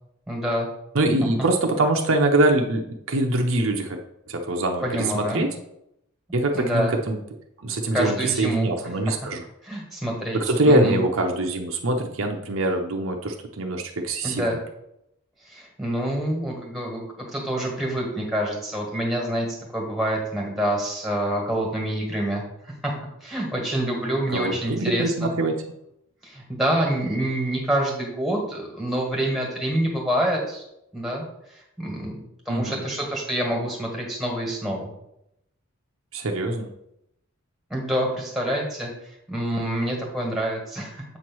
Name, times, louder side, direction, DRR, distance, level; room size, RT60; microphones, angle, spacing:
voice 1, 0.3-0.7 4.8-5.5 6.5-6.9 7.9-8.7 9.6-10.4 10.6-11.0 14.2-14.6 15.4-17.0 17.3-19.5 19.7-22.9 23.2-25.3 26.2-30.6 30.9-31.2 31.5-34.9 37.7-38.9 39.3-41.0, right 1 dB, ahead, -2 dB, 1.6 m, -26 dB
voice 2, 0.9-4.0 4.3-5.5 6.3-7.2 7.6-9.4 10.3-14.6 24.3-25.5 32.5-32.8 36.1-36.7, right 2 dB, 65° right, 3 dB, 0.7 m, -23 dB
7.8 x 3.1 x 6.1 m, 0.81 s
head